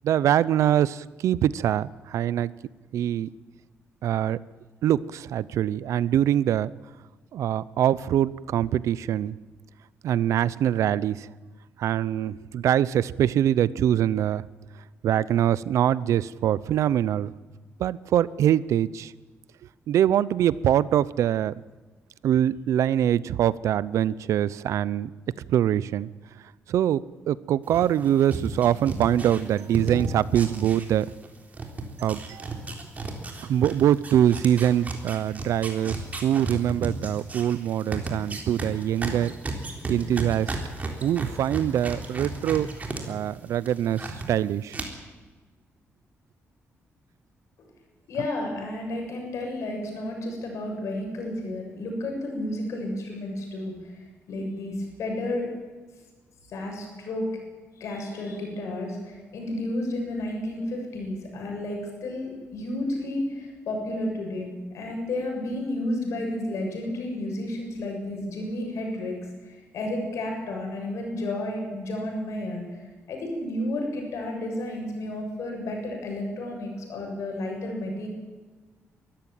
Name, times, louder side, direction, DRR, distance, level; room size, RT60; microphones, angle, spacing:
voice 1, 0.0-2.5 2.9-3.3 4.0-4.4 4.8-6.7 7.3-9.3 10.0-11.3 11.8-14.4 15.0-17.3 17.8-19.1 19.9-21.5 22.2-25.1 25.5-26.1 26.7-27.0 27.3-31.1 32.0-32.5 33.5-39.3 39.9-40.6 41.0-42.7 43.1-44.8, right 10 dB, 85° right, 19 dB, 0.7 m, -23 dB
sound 1, 27.7-31.3 31.5-43.0 43.3-44.3 44.7-44.8, right 3 dB, 30° right, 3.7 m, -33 dB
voice 2, 48.1-53.7 54.3-55.5 56.5-57.3 57.8-72.8 73.1-78.1, left 1 dB, 80° left, 2 dB, 7.3 m, -32 dB
22.5 x 14.5 x 8.9 m, 1.3 s
cardioid pair, 120°, 5 cm